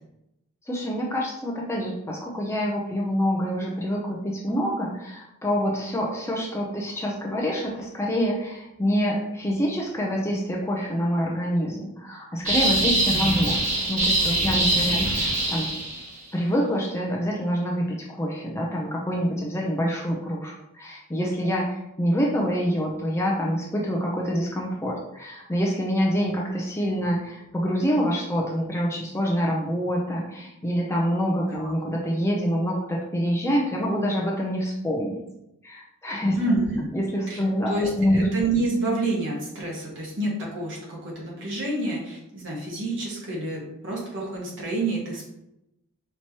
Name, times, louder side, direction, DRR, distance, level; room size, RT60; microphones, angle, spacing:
voice 1, 0.7-13.6 13.9-15.7 16.3-35.2 35.6-36.4 36.9-38.2, equal, 10° left, -2 dB, 0.5 m, -26 dB
sound 1, 12.5-16.1, right 1 dB, 35° right, 1.5 m, -23 dB
voice 2, 36.4-36.9 37.3-45.2, right 2 dB, 55° right, -3 dB, 1.3 m, -28 dB
4.5 x 2.9 x 2.9 m, 0.86 s
head